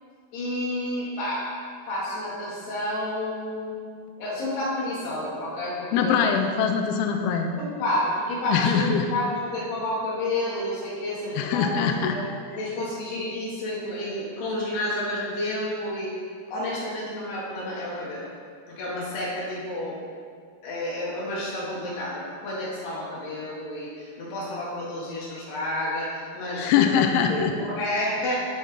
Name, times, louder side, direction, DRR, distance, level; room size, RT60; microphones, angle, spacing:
voice 1, 0.3-1.5 1.9-3.8 4.2-6.2 7.6-11.8 12.1-12.2 12.5-16.2 16.5-18.3 18.7-20.0 20.6-27.0 27.3-28.5, left 1 dB, 65° left, -7 dB, 4.3 m, -30 dB
voice 2, 5.9-7.5 8.5-9.1 11.4-12.2 26.6-27.5, left 7 dB, 85° left, 4 dB, 2.3 m, -22 dB
16.5 x 5.6 x 3.7 m, 2.1 s
omnidirectional pair, 5.2 m